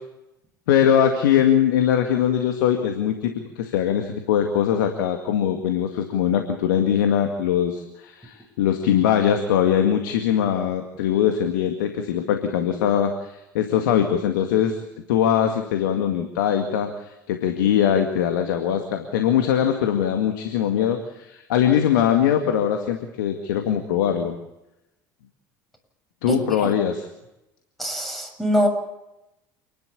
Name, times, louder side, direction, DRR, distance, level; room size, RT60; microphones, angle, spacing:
voice 1, 0.7-14.8 15.1-24.4 26.2-27.1, left 9 dB, 75° left, 5 dB, 2.1 m, -21 dB
voice 2, 26.3-26.7 27.8-28.7, equal, ahead, 4 dB, 7.3 m, -23 dB
28.5 x 12.0 x 8.4 m, 0.92 s
hypercardioid pair, 70°, 11 cm